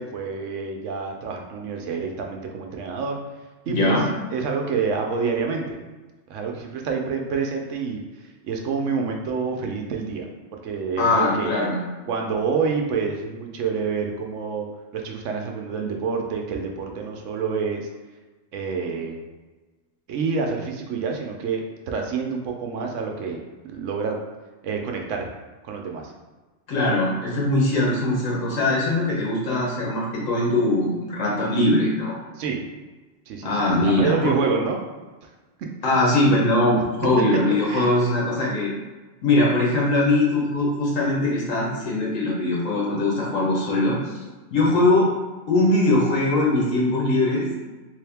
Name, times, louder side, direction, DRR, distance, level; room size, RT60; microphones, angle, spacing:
voice 1, 0.0-3.2 3.7-4.0 4.3-5.8 6.3-8.0 8.4-11.5 12.1-14.7 14.9-17.8 18.5-19.2 20.1-23.4 23.6-24.2 24.6-25.3 25.6-26.1 32.4-32.6 33.3-33.5 33.8-34.8 35.6-35.7 37.7-37.9, right 5 dB, 75° right, 2 dB, 0.9 m, -27 dB
voice 2, 3.7-4.1 11.0-11.8 26.7-32.1 33.4-34.5 35.8-38.7 39.2-44.1 44.5-45.1 45.5-47.5, left 2 dB, 85° left, -4 dB, 1.4 m, -21 dB
3.4 x 2.7 x 3.4 m, 1.3 s
omnidirectional pair, 1.3 m